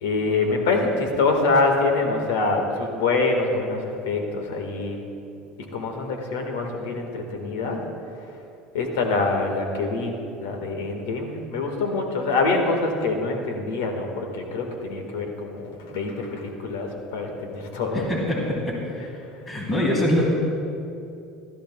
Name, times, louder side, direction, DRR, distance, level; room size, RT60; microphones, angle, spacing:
voice 1, 0.0-5.0 5.7-7.8 8.7-10.1 10.4-18.1, left 3 dB, 90° left, 3 dB, 1.5 m, -25 dB
voice 2, 17.9-18.4 18.8-19.1 19.5-20.3, left 1 dB, 25° left, -3 dB, 2.4 m, -23 dB
16.0 x 13.0 x 2.3 m, 2.7 s
supercardioid pair, 105°, 0 cm